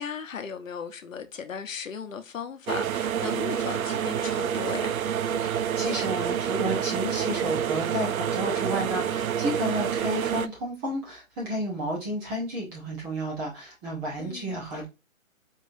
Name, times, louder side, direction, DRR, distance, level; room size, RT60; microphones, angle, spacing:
voice 1, 0.0-4.9 14.2-14.8, left 6 dB, 70° left, 0.9 m, -37 dB
sound 1, 2.7-10.5, right 9 dB, 85° right, 0.5 m, -28 dB
voice 2, 5.4-14.8, equal, 10° right, 0.8 m, -32 dB
4.5 x 3.3 x 2.6 m
hypercardioid pair, 150°, 41 cm